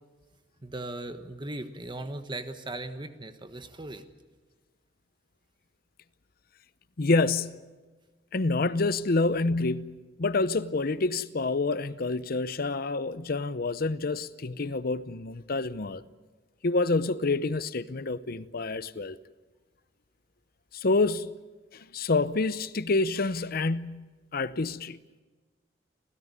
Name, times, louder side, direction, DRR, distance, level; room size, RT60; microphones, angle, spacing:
voice 1, 0.6-4.0, right 2 dB, 25° right, 1.4 m, -38 dB
voice 2, 7.0-7.6 8.3-16.0 16.6-19.2 20.7-21.3 21.7-24.1 24.3-25.0, left 3 dB, 55° left, 0.7 m, -27 dB
30.0 x 13.5 x 9.7 m
head